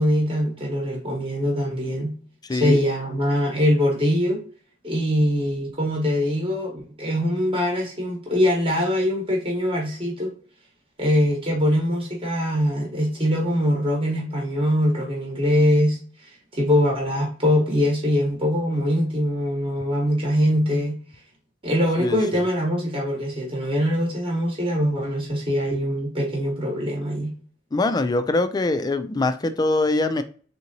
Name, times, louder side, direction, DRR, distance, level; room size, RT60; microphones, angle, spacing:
voice 1, 0.0-2.1 2.5-4.4 4.8-10.3 11.0-21.0 21.6-27.3, equal, 25° right, 0.9 m, -23 dB
voice 2, 2.4-2.8 22.0-22.4 27.7-30.2, left 2 dB, 20° left, 0.3 m, -23 dB
3.6 x 2.9 x 2.6 m
head